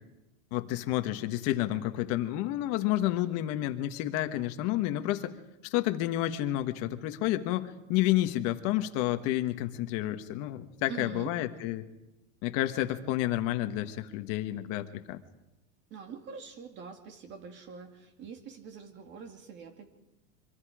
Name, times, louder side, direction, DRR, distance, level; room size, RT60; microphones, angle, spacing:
voice 1, 0.5-5.3 5.6-11.8 12.4-15.2, left 14 dB, 40° left, 8 dB, 1.4 m, -30 dB
voice 2, 10.9-11.3 15.9-19.9, right 6 dB, 30° right, 6 dB, 2.4 m, -44 dB
25.0 x 24.5 x 5.0 m, 0.97 s
supercardioid pair, 165°, 37 cm